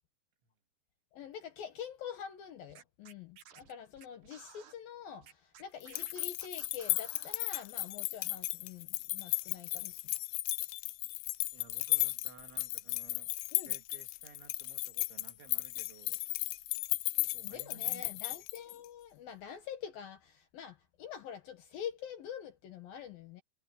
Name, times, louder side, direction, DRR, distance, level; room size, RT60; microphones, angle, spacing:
voice 1, 1.1-10.0 13.5-13.7 17.4-23.4, left 8 dB, 65° left, 2.5 m, -46 dB
Scratching (performance technique), 2.7-4.7 5.2-7.4, right 9 dB, 55° right, 2.6 m, -56 dB
sound 1, 5.8-18.9, left 23 dB, 80° left, 2.5 m, -35 dB
voice 2, 11.5-16.2 17.2-18.1, right 7 dB, 75° right, 4.7 m, -57 dB
omnidirectional pair, 5.4 m